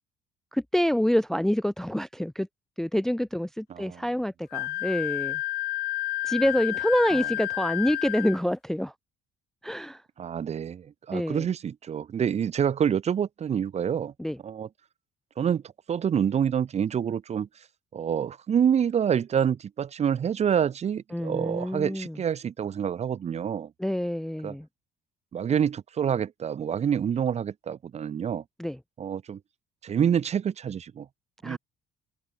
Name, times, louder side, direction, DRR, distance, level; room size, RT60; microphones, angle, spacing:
voice 1, 0.5-2.5 2.8-5.4 6.2-8.9 9.6-10.0 11.1-11.5 14.2-14.4 21.1-22.2 23.8-24.7 28.6-28.8 31.4-31.6, equal, ahead, 0.5 m, -27 dB
voice 2, 3.7-4.0 10.2-14.1 14.4-14.7 15.4-15.6 15.9-17.5 17.9-23.7 24.4-24.6 25.3-28.4 29.0-29.4 29.8-31.1 31.4-31.6, right 8 dB, 40° right, 1.0 m, -27 dB
Wind instrument woodwind instrument, 4.5-8.4, left 16 dB, 70° left, 0.7 m, -30 dB
cardioid pair, 110°, 17 cm